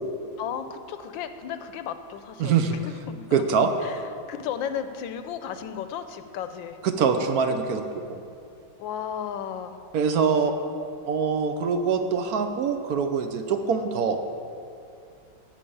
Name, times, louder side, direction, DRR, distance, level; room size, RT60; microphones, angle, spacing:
voice 1, 0.4-2.5 2.8-3.3 3.8-6.8 8.8-9.8, left 8 dB, 75° left, 10 dB, 1.3 m, -34 dB
voice 2, 2.4-2.8 3.3-3.7 6.8-7.8 8.1-8.2 9.9-10.5 11.0-14.2, right 6 dB, 60° right, 7 dB, 1.0 m, -24 dB
13.0 x 5.2 x 8.6 m, 2.4 s
omnidirectional pair, 2.2 m